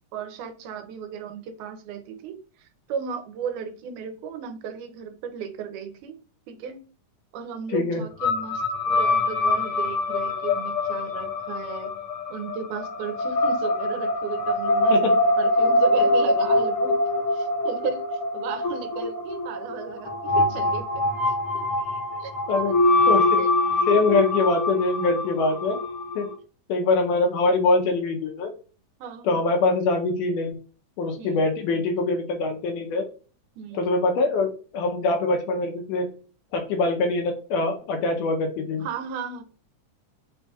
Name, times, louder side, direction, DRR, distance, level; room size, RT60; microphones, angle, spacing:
voice 1, 0.1-6.2 6.5-6.8 7.3-11.9 12.3-17.0 17.3-21.7 22.2-22.6 23.4-23.5 29.0-29.4 31.2-31.5 33.6-33.8 38.8-39.4, right 7 dB, 90° right, 2.1 m, -35 dB
voice 2, 7.7-8.0 14.9-15.0 22.5-22.7 23.1-23.4 23.9-25.8 26.2-26.3 26.7-28.5 29.2-30.6 31.0-33.1 33.7-36.1 36.5-38.9, left 3 dB, 85° left, 2.2 m, -23 dB
sound 1, 8.2-26.3, left 2 dB, 55° left, 1.5 m, -24 dB
5.3 x 2.3 x 4.0 m
omnidirectional pair, 3.6 m